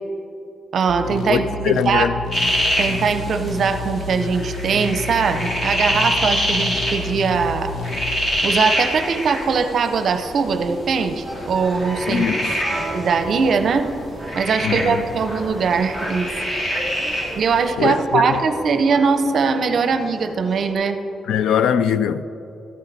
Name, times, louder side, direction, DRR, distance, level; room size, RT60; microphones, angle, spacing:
voice 1, 0.7-2.1 2.8-7.7 8.4-12.2 12.9-13.9 14.3-16.3 17.4-21.0, right 5 dB, 50° right, 0.6 m, -21 dB
sound 1, 0.9-8.4, left 3 dB, 70° left, 0.7 m, -31 dB
voice 2, 1.3-2.2 12.1-12.5 14.6-15.0 17.8-18.4 21.3-22.3, left 8 dB, 90° left, 0.3 m, -21 dB
sound 2, 2.3-17.7, equal, 30° left, 1.9 m, -26 dB
sound 3, 11.2-20.7, right 1 dB, 10° left, 2.1 m, -35 dB
13.5 x 8.7 x 4.1 m
wide cardioid pair, 165°, 0 cm